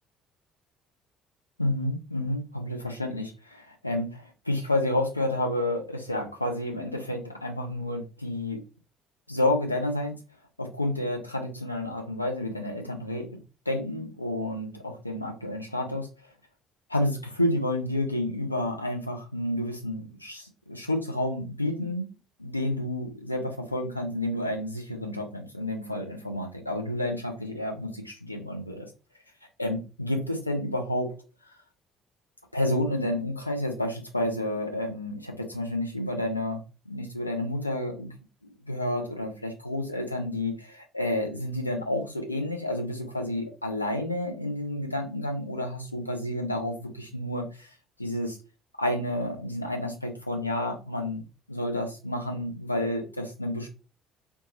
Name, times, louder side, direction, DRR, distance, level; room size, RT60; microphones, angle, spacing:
voice 1, 1.6-8.6 9.3-10.2 10.6-13.4 13.7-16.1 16.9-22.1 22.4-28.9 29.6-31.1 32.5-36.6 36.9-38.1 38.7-48.4 48.8-51.2 51.5-53.7, left 1 dB, 85° left, 2 dB, 0.4 m, -30 dB
2.6 x 2.2 x 2.8 m, 0.33 s
figure-of-eight pair, 55°, 0 cm